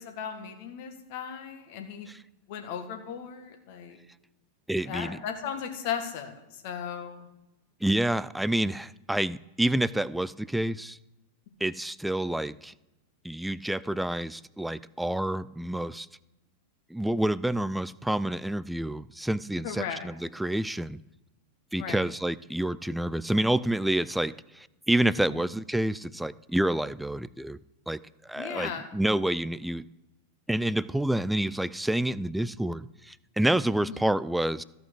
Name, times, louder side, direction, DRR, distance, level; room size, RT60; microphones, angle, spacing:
voice 1, 0.0-2.1 2.5-4.0 4.9-7.3 19.6-20.1 21.8-22.0 25.3-25.4 28.3-28.9 33.8-34.0, left 7 dB, 50° left, 4 dB, 1.7 m, -36 dB
voice 2, 4.7-5.2 7.8-11.0 11.6-12.7 13.2-16.1 16.9-21.0 21.7-27.6 27.9-28.0 28.3-29.9 30.5-34.6, right 1 dB, 5° right, 19 dB, 0.3 m, -28 dB
14.5 x 5.8 x 6.4 m, 0.97 s
figure-of-eight pair, 90°, 0 cm